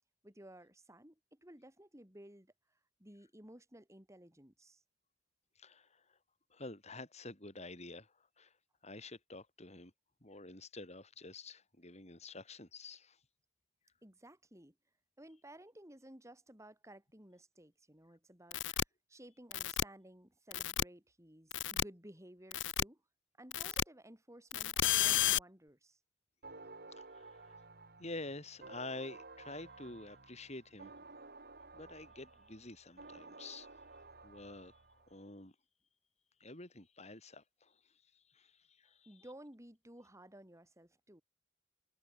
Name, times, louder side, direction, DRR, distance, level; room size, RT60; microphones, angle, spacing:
voice 1, 0.2-2.5 3.0-4.8 14.0-14.7 15.2-18.8 19.1-23.0 23.4-26.0 39.0-41.2, right 1 dB, 15° right, 6.8 m, -56 dB
voice 2, 5.6-6.2 6.5-8.6 8.8-9.9 10.2-13.2 26.9-27.6 28.0-30.9 31.7-33.8 34.2-35.6 36.4-39.2, left 2 dB, 35° left, 6.9 m, -49 dB
sound 1, 18.5-18.8 19.5-19.8 20.5-20.8 21.5-21.8 22.5-22.8 23.5-23.8 24.5-25.4, left 11 dB, 90° left, 1.1 m, -32 dB
sound 2, 26.4-35.1, right 3 dB, 55° right, 6.2 m, -54 dB
head